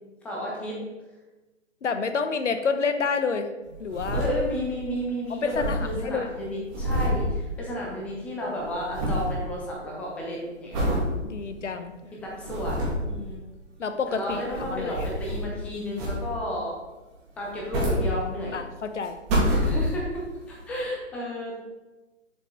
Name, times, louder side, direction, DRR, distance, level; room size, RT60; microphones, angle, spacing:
voice 1, 0.2-0.8 4.1-11.0 12.1-13.4 14.1-16.8 17.4-18.5 19.5-20.2 20.5-21.6, equal, 5° left, -3 dB, 0.6 m, -32 dB
voice 2, 1.8-3.5 3.8-4.2 5.4-6.3 11.2-11.9 13.8-15.0 18.5-19.2, left 5 dB, 70° left, 8 dB, 0.8 m, -28 dB
sound 1, 3.7-4.8 5.1-5.2 5.3-8.1 8.4-9.4 9.8-10.2 10.7-11.1 11.6-11.7 12.2-13.1 14.1-15.6 15.9-16.5 17.4-18.6 19.0-20.2 20.8-20.9, equal, 25° right, 1.9 m, -28 dB
7.3 x 5.2 x 3.8 m, 1.1 s
figure-of-eight pair, 135°, 38 cm